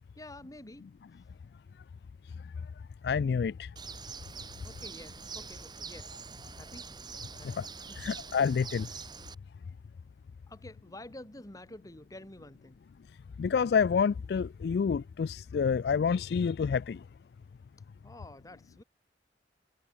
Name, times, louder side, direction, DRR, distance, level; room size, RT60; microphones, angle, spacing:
voice 1, 0.2-0.9 4.6-6.1 6.6-6.9 7.4-8.1 10.5-12.8 18.0-18.8, left 1 dB, 20° left, 2.4 m, -49 dB
voice 2, 3.0-3.7 7.4-7.7 8.0-8.9 13.4-17.0, left 6 dB, 60° left, 0.3 m, -28 dB
Bird, 3.8-9.3, right 5 dB, 25° right, 2.6 m, -45 dB
head